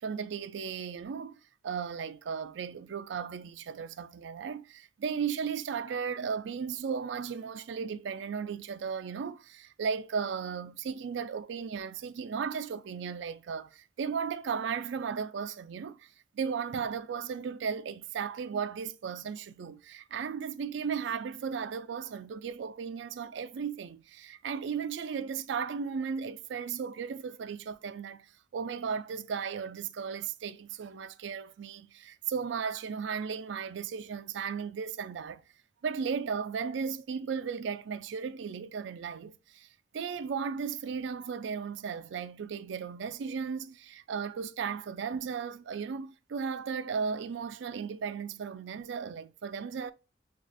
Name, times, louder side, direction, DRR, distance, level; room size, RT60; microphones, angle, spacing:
voice 1, 0.0-35.4 35.8-39.7 39.9-49.9, right 6 dB, 65° right, 0.3 m, -35 dB
5.9 x 2.4 x 2.5 m
head